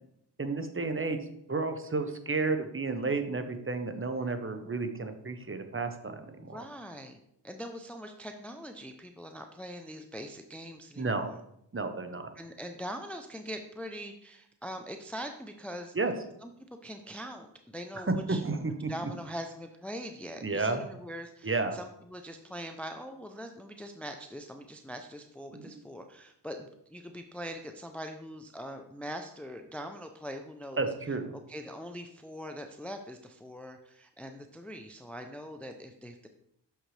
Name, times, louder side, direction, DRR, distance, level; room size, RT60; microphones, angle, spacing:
voice 1, 0.4-1.2 1.5-6.6 11.0-11.3 11.7-12.3 15.9-16.1 18.1-18.9 20.4-20.8 21.4-21.8 25.5-25.7 30.8-31.3, right 3 dB, 30° right, 7 dB, 0.9 m, -31 dB
voice 2, 6.4-11.4 12.4-15.9 16.4-16.5 16.8-18.4 18.9-30.9 31.5-36.3, equal, 5° left, 6 dB, 0.5 m, -42 dB
6.5 x 6.3 x 3.3 m, 0.75 s
cardioid pair, 55°, 45 cm